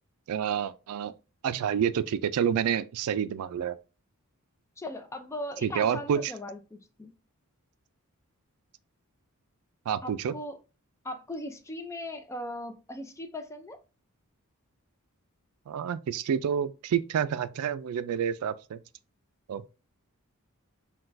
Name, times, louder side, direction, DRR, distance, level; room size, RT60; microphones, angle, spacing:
voice 1, 0.3-1.1 1.4-3.7 5.6-6.3 9.9-10.3 15.7-18.8 19.5-19.6, right 8 dB, 80° right, 0.3 m, -28 dB
voice 2, 4.8-7.1 10.0-10.6 11.0-13.8, left 1 dB, 15° left, 0.4 m, -38 dB
5.9 x 2.3 x 2.5 m
head